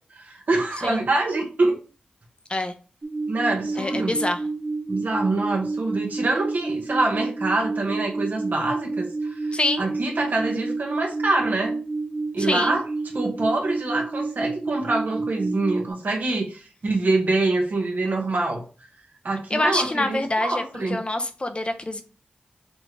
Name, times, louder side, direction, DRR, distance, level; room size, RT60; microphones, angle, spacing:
voice 1, 0.1-1.8 3.3-4.1 4.9-11.8 12.3-12.8 13.1-18.6 19.2-21.0, right 2 dB, 65° right, 1 dB, 1.3 m, -25 dB
sound 1, 3.0-15.9, right 3 dB, 35° right, 0.3 m, -29 dB
voice 2, 3.8-4.4 9.5-9.9 12.4-12.8 19.5-20.6 20.9-22.0, left 2 dB, 35° left, 7 dB, 0.7 m, -25 dB
5.3 x 2.4 x 3.3 m, 0.36 s
cardioid pair, 45°, 3 cm